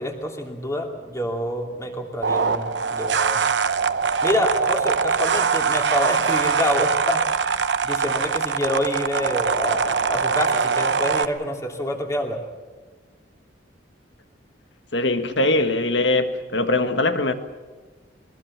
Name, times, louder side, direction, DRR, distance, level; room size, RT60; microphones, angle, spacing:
voice 1, 0.0-3.4 4.2-7.6 7.8-12.4, left 1 dB, 15° left, 2.9 m, -27 dB
sound 1, 2.2-11.2, right 5 dB, 70° right, 0.8 m, -22 dB
voice 2, 14.9-17.3, left 2 dB, 75° left, 1.7 m, -21 dB
22.0 x 21.0 x 7.5 m
head